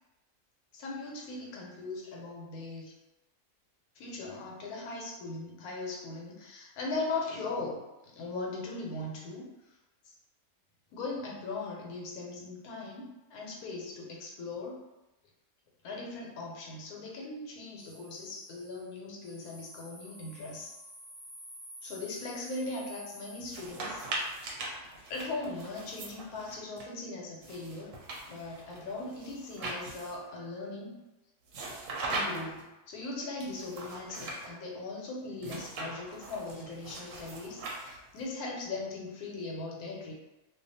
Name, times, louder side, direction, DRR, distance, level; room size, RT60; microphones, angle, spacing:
voice 1, 0.7-2.9 4.0-7.8 8.1-9.5 10.1-10.2 10.9-14.8 15.8-20.7 21.8-24.0 25.1-27.9 28.2-31.0 32.0-40.1, left 3 dB, 80° left, -2 dB, 1.1 m, -39 dB
sound 1, 17.8-24.6, equal, 35° left, 0.4 m, -51 dB
sound 2, 23.4-26.8 27.4-30.3 31.5-32.6 33.4-34.5 35.4-38.2, right 2 dB, 70° right, 0.8 m, -40 dB
2.4 x 2.2 x 2.6 m, 1.0 s
omnidirectional pair, 1.6 m